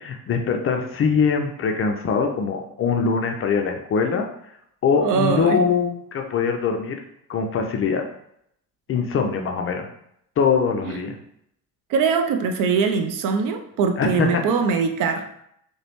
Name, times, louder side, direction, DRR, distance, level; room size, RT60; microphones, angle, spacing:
voice 1, 0.0-4.3 4.8-7.0 7.3-8.0 8.9-9.9 10.4-11.2 14.0-14.4, left 5 dB, 30° left, 3 dB, 0.5 m, -22 dB
voice 2, 5.0-5.6 10.8-11.1 11.9-15.2, right 5 dB, 45° right, 6 dB, 0.5 m, -22 dB
4.8 x 2.2 x 3.0 m, 0.73 s
figure-of-eight pair, 55°, 48 cm